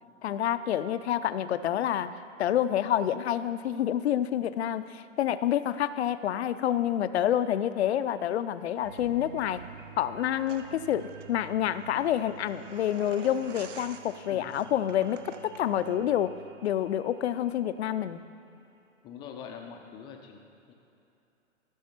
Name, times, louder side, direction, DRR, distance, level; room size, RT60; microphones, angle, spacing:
voice 1, 0.2-9.6 10.0-16.3 16.6-18.2, left 11 dB, 55° left, 12 dB, 0.5 m, -28 dB
sound 1, 8.8-18.2 18.6-18.7, right 6 dB, 40° right, 1.0 m, -50 dB
sound 2, 10.4-16.0, right 6 dB, 65° right, 0.8 m, -50 dB
voice 2, 19.0-20.4 20.7-20.8, left 7 dB, 10° left, 3 dB, 0.5 m, -44 dB
14.0 x 6.3 x 4.4 m, 2.8 s
hypercardioid pair, 125°, 39 cm